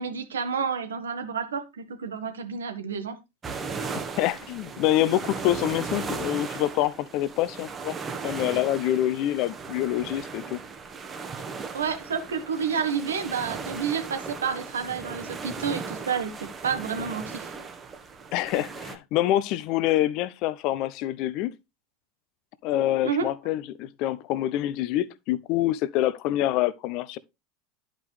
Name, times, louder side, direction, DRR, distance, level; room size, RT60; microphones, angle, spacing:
voice 1, 0.0-3.2 11.7-17.5 23.0-23.3, right 6 dB, 85° right, 1.4 m, -30 dB
sound 1, 3.4-19.0, right 5 dB, 25° right, 1.3 m, -37 dB
voice 2, 4.2-7.9 8.2-10.6 18.3-21.5 22.6-27.2, left 14 dB, 55° left, 0.6 m, -26 dB
11.0 x 5.2 x 3.2 m
hypercardioid pair, 85°, 0 cm